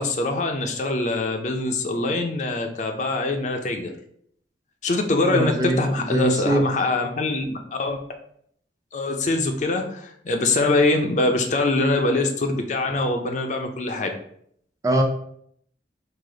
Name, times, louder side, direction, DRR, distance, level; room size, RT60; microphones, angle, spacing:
voice 1, 0.0-3.9 4.8-8.0 8.9-14.1, left 2 dB, 40° left, 4 dB, 0.4 m, -23 dB
voice 2, 5.3-6.7 14.8-15.0, right 1 dB, 20° right, 3 dB, 0.4 m, -22 dB
4.8 x 2.0 x 3.7 m, 0.67 s
head